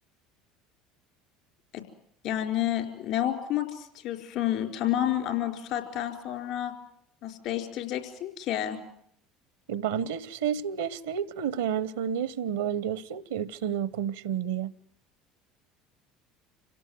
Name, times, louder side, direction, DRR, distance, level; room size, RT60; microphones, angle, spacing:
voice 1, 2.2-6.7 7.2-8.8, left 12 dB, 65° left, 4.3 m, -30 dB
voice 2, 9.7-14.7, right 8 dB, 85° right, 0.9 m, -30 dB
27.0 x 17.5 x 7.7 m
hypercardioid pair, 75°, 0 cm